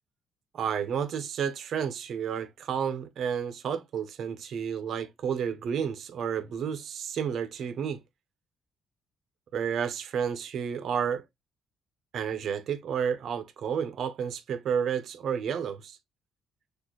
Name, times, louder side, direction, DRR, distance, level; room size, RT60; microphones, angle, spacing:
voice 1, 0.5-8.0 9.5-11.2 12.1-16.0, right 7 dB, 55° right, 0.7 m, -31 dB
6.6 x 2.4 x 3.0 m
cardioid pair, 135°, 0 cm